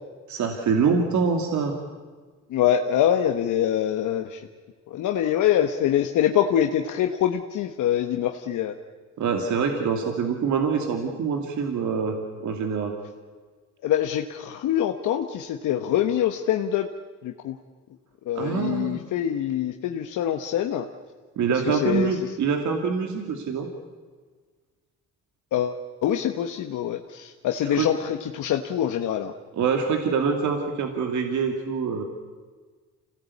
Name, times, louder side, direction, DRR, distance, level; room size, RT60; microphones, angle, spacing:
voice 1, 0.3-1.8 9.2-12.9 18.4-19.0 21.4-23.7 27.6-27.9 29.5-32.0, right 5 dB, 70° right, 4 dB, 2.5 m, -25 dB
voice 2, 2.5-4.4 4.9-8.7 13.8-16.9 17.2-17.6 18.3-20.9 21.5-22.1 25.5-29.3, left 10 dB, 80° left, 5 dB, 1.2 m, -24 dB
26.5 x 17.5 x 8.4 m, 1.5 s
cardioid pair, 90°, 30 cm